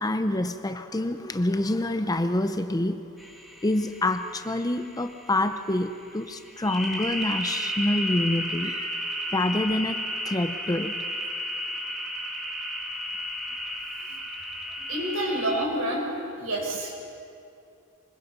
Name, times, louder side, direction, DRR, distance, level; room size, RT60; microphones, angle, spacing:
voice 1, 0.0-3.0 3.6-9.0 9.3-11.0, left 1 dB, 15° left, 9 dB, 0.6 m, -27 dB
sound 1, 3.2-15.7, equal, ahead, 2.1 m, -33 dB
voice 2, 14.9-16.1 16.4-16.9, right 1 dB, 70° right, 0 dB, 5.1 m, -28 dB
24.5 x 22.0 x 5.5 m, 2.5 s
head